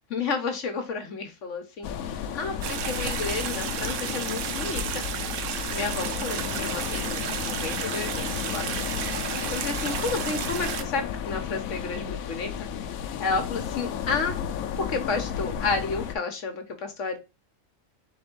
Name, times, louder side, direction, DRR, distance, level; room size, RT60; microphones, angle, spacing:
voice 1, 0.1-5.0 5.7-8.7 9.5-12.7 13.2-14.4 14.8-17.2, left 4 dB, 65° left, 5 dB, 1.2 m, -31 dB
sound 1, 1.8-16.2, left 8 dB, 80° left, 1.0 m, -33 dB
sound 2, 2.6-10.8, right 8 dB, 70° right, 0.9 m, -32 dB
4.1 x 3.5 x 3.7 m, 0.27 s
omnidirectional pair, 1.4 m